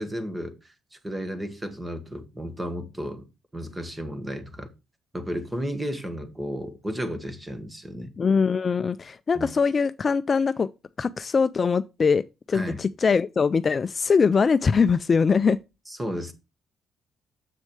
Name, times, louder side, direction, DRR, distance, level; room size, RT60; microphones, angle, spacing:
voice 1, 0.0-3.3 3.5-4.7 5.1-8.1 9.3-9.5 12.5-12.8 15.9-16.3, equal, 15° right, 1.5 m, -33 dB
voice 2, 8.2-10.7 11.0-12.2 12.5-15.6, left 5 dB, 40° left, 0.3 m, -22 dB
7.6 x 6.3 x 3.2 m
cardioid pair, 90°, 0 cm